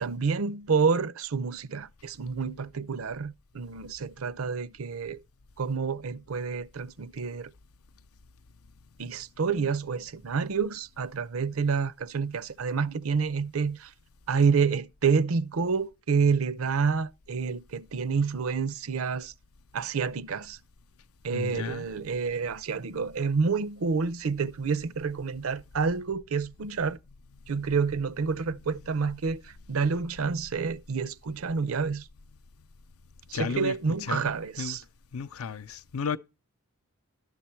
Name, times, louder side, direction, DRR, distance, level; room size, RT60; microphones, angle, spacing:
voice 1, 0.0-5.2 5.6-7.5 9.0-13.9 14.3-19.3 19.7-20.6 21.2-27.0 27.5-29.4 29.7-32.1 33.3-34.8, right 5 dB, 70° right, 0.6 m, -28 dB
voice 2, 21.3-21.9 33.3-33.7 34.0-34.3 34.6-34.8 35.1-36.2, left 6 dB, 80° left, 0.5 m, -33 dB
12.0 x 7.1 x 4.4 m
head